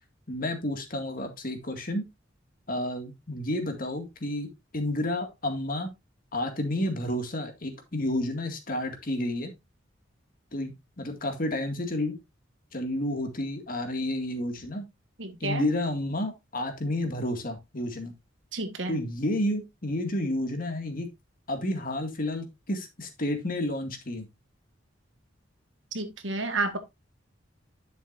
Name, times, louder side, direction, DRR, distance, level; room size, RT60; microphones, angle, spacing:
voice 1, 0.3-2.0 2.7-5.9 6.3-9.5 10.5-12.2 12.7-14.9 15.4-18.1 18.9-21.1 21.5-24.3, left 1 dB, 45° left, 2.0 m, -31 dB
voice 2, 15.2-15.7 18.5-19.0 25.9-26.8, right 2 dB, 70° right, 1.6 m, -30 dB
11.0 x 6.7 x 2.6 m
head